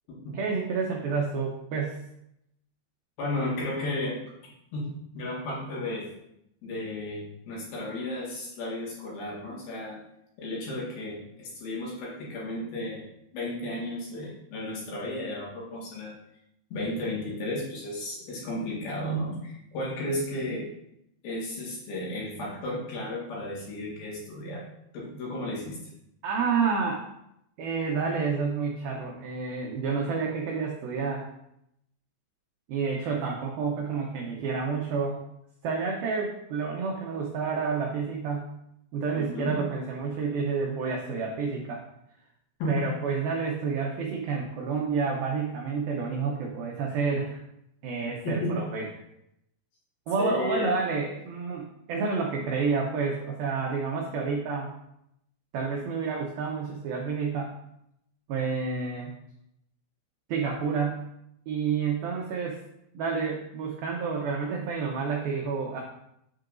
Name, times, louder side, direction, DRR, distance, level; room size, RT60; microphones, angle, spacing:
voice 1, 0.3-2.0 26.2-27.1 27.6-31.2 32.7-35.2 35.6-38.5 38.9-41.8 42.7-47.4 47.8-48.9 50.1-54.7 55.5-57.5 58.3-59.1 60.3-61.1 61.5-62.6 62.9-65.8, right 5 dB, 90° right, -1 dB, 2.0 m, -29 dB
voice 2, 3.2-4.2 4.7-4.9 5.1-6.1 6.6-10.0 10.4-13.0 13.3-16.1 16.7-20.7 21.2-24.7 24.9-25.8 39.1-39.6 42.6-42.9 48.2-48.5 50.2-50.7, left 1 dB, 60° left, -4 dB, 3.3 m, -33 dB
8.6 x 7.6 x 2.6 m, 0.78 s
omnidirectional pair, 5.5 m